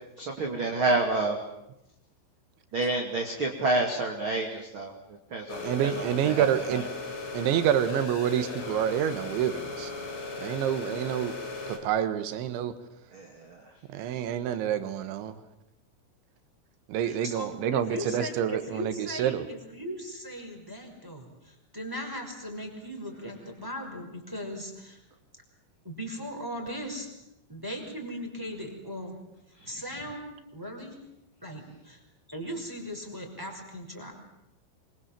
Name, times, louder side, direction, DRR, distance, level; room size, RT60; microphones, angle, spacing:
voice 1, 0.2-1.4 2.7-6.9 13.1-13.6 29.6-29.8, right 2 dB, 35° right, 2 dB, 2.2 m, -29 dB
sound 1, 5.5-11.8, left 3 dB, 85° left, 6.4 m, -37 dB
voice 2, 5.6-6.8 7.3-9.9 10.4-11.3 11.7-12.7 13.9-15.4 16.9-19.5, right 10 dB, 75° right, 11 dB, 3.7 m, -28 dB
voice 3, 17.0-25.0 25.8-27.1 27.5-29.2 29.7-31.0 31.4-32.0 32.3-34.1, equal, 5° right, 1 dB, 5.2 m, -38 dB
26.0 x 24.5 x 7.6 m, 0.87 s
omnidirectional pair, 5.6 m